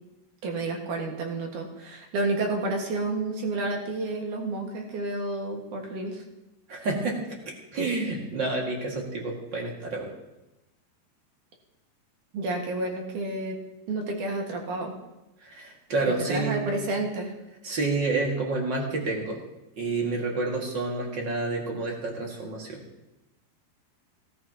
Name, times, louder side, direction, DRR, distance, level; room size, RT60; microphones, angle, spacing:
voice 1, 0.4-6.2 12.3-13.6 13.9-14.9 16.3-17.3, right 2 dB, 60° right, 1 dB, 2.9 m, -30 dB
voice 2, 6.7-10.1 15.4-16.6 17.6-19.4 19.8-22.8, right 3 dB, 35° right, -1 dB, 2.0 m, -29 dB
17.5 x 14.0 x 2.9 m, 0.96 s
omnidirectional pair, 4.7 m